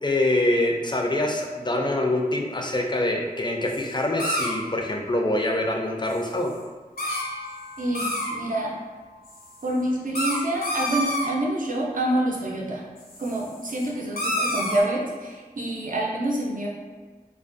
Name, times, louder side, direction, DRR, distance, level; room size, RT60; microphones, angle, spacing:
voice 1, 0.0-6.5, left 1 dB, 30° left, 1 dB, 0.3 m, -25 dB
sound 1, 3.7-3.9 4.2-4.5 6.1-6.2 6.5-6.6 7.0-7.5 7.8-8.4 9.3-9.7 10.1-11.3 13.0-13.9 14.2-14.8, left 1 dB, 80° left, 0.5 m, -28 dB
sound 2, 7.0-10.8 11.8-12.0, left 2 dB, 15° right, 0.6 m, -45 dB
voice 2, 7.8-8.7 9.6-12.8 13.2-16.7, right 1 dB, 60° right, -3 dB, 0.5 m, -27 dB
2.4 x 2.2 x 2.4 m, 1.4 s
wide cardioid pair, 45°, 16 cm